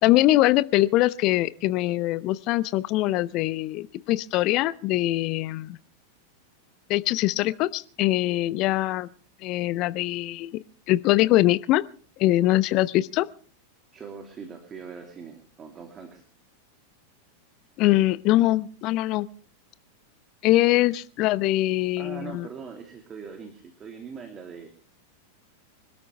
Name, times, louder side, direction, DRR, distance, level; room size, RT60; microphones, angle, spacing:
voice 1, 0.0-5.8 6.9-9.1 9.4-11.8 12.2-13.3 17.8-19.3 20.4-22.5, left 16 dB, 40° left, 17 dB, 0.8 m, -23 dB
voice 2, 13.9-16.2 22.0-24.7, right 6 dB, 25° right, 4 dB, 2.8 m, -41 dB
25.5 x 13.0 x 3.4 m, 0.39 s
figure-of-eight pair, 90°, 0 cm